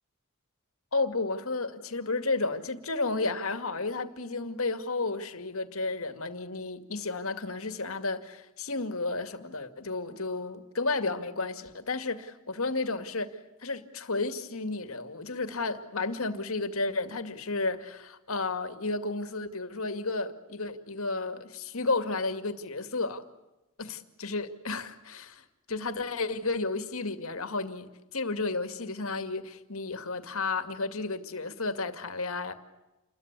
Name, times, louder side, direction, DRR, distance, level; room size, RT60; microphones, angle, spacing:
voice 1, 0.9-13.3 13.6-23.2 23.8-32.5, left 3 dB, 80° left, 2.3 m, -32 dB
29.0 x 22.0 x 8.3 m
head